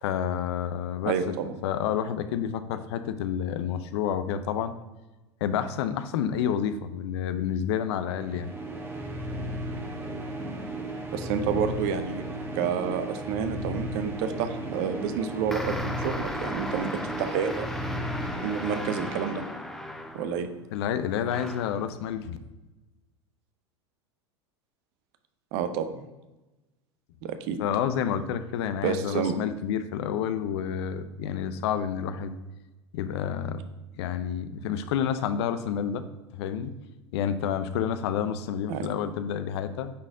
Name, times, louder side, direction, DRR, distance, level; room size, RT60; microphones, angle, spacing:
voice 1, 0.0-1.1 1.6-4.7 5.4-8.5 20.7-22.4 27.6-32.3 32.9-33.6 34.0-36.0 36.3-36.7 37.1-39.9, left 8 dB, 65° left, 11 dB, 0.6 m, -29 dB
voice 2, 1.0-1.5 11.1-12.3 12.5-17.7 18.4-19.4 20.1-20.5 25.5-26.1 27.2-27.6 28.8-29.4 38.7-38.9, right 7 dB, 60° right, 9 dB, 0.8 m, -29 dB
sound 1, 8.1-20.0, right 1 dB, 15° right, 1.4 m, -35 dB
sound 2, 15.5-20.6 21.3-21.8, left 1 dB, ahead, 0.7 m, -36 dB
9.5 x 4.1 x 3.7 m, 1.1 s
hypercardioid pair, 85°, 15 cm